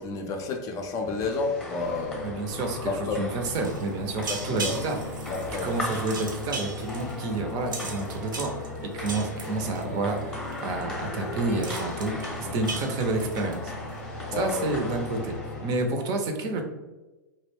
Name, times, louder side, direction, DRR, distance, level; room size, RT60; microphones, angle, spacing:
voice 1, 0.0-2.3 2.8-3.2 4.3-4.7 5.3-5.7 14.3-14.7, left 3 dB, 35° left, 3 dB, 0.4 m, -30 dB
sound 1, 1.0-15.9, left 1 dB, 10° left, 0.8 m, -39 dB
sound 2, 1.7-15.7, left 2 dB, 90° left, 0.6 m, -39 dB
voice 2, 2.2-2.9 3.2-5.3 5.6-13.7 14.4-15.4 15.6-16.6, right 2 dB, 40° right, 4 dB, 0.5 m, -29 dB
sound 3, 3.4-10.2 10.5-10.8 11.1-11.2 11.5-14.0 14.4-14.7, right 3 dB, 85° right, 0.6 m, -38 dB
2.3 x 2.1 x 3.2 m, 1.1 s
hypercardioid pair, 105°, 10 cm